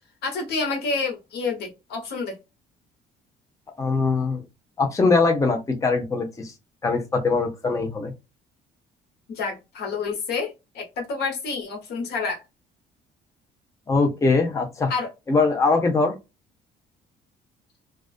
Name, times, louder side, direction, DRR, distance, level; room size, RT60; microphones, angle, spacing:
voice 1, 0.2-2.4 9.3-12.4 14.9-15.1, left 4 dB, 70° left, 1.1 m, -28 dB
voice 2, 3.8-4.4 4.8-6.5 6.8-8.1 13.9-14.9 15.3-16.1, left 3 dB, 20° left, 0.6 m, -22 dB
2.3 x 2.3 x 2.4 m
cardioid pair, 110°, 17 cm